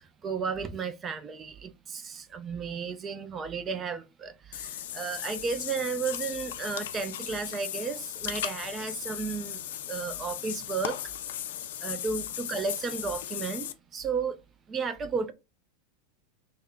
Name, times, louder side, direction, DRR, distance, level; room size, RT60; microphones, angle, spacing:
voice 1, 0.0-11.0 11.8-14.4 14.7-15.3, right 5 dB, 20° right, 0.4 m, -33 dB
Water / Bathtub (filling or washing), 4.5-13.7, left 11 dB, 80° left, 0.4 m, -37 dB
3.5 x 2.1 x 3.6 m
supercardioid pair, 165°, 0 cm